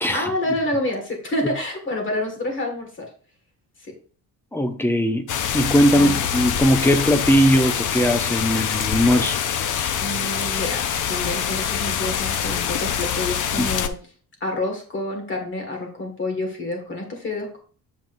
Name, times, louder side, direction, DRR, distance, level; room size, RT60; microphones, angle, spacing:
voice 1, 0.1-3.1 3.8-3.9 5.9-6.2 10.0-14.0 14.4-17.6, left 1 dB, 30° left, 1.9 m, -28 dB
voice 2, 4.5-5.3 5.5-9.4 13.6-13.7, equal, 5° left, 0.5 m, -19 dB
sound 1, 5.3-13.9, left 8 dB, 50° left, 0.6 m, -25 dB
7.8 x 7.1 x 2.6 m
cardioid pair, 175°, 39 cm